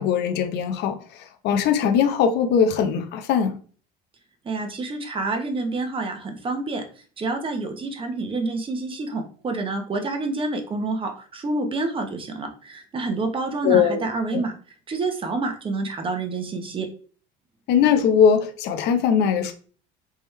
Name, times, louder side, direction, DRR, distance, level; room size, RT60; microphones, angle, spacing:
voice 1, 0.0-3.6 13.6-14.1 14.3-14.4 17.7-19.5, left 7 dB, 60° left, 0.7 m, -20 dB
voice 2, 4.4-6.8 7.2-14.5 14.9-16.9, right 3 dB, 25° right, 0.9 m, -28 dB
3.5 x 3.0 x 3.2 m
supercardioid pair, 105°, 19 cm